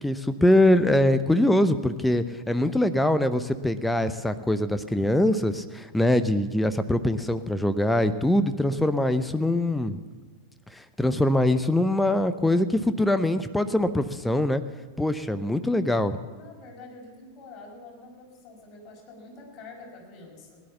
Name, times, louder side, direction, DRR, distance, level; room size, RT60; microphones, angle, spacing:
voice 1, 0.0-10.0 10.8-14.6 15.0-16.2, left 1 dB, 5° left, 11 dB, 0.7 m, -23 dB
voice 2, 16.3-20.6, left 3 dB, 35° left, -2 dB, 5.4 m, -46 dB
17.5 x 10.5 x 7.1 m, 1.4 s
figure-of-eight pair, 90°, 0 cm